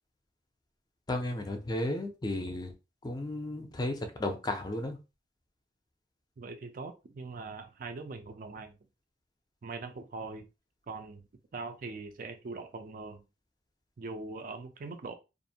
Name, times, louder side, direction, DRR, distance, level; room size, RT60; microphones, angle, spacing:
voice 1, 1.1-2.7 3.0-5.0, left 1 dB, 25° left, 0.5 m, -34 dB
voice 2, 6.4-8.8 9.6-10.5 10.9-13.3 14.0-15.1, right 3 dB, 50° right, 0.4 m, -42 dB
2.5 x 2.1 x 2.7 m
head